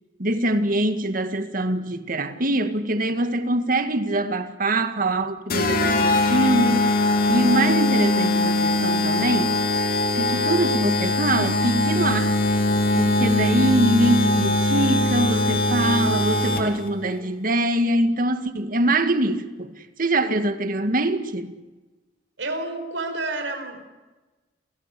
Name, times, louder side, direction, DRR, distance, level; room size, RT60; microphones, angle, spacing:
voice 1, 0.2-9.6 10.1-12.4 12.9-21.5, right 1 dB, 50° right, 2.0 m, -23 dB
sound 1, 5.5-16.9, left 2 dB, 55° left, 3.2 m, -21 dB
voice 2, 20.2-20.5 22.4-23.8, right 2 dB, 85° right, 4.6 m, -30 dB
29.0 x 18.0 x 8.5 m
head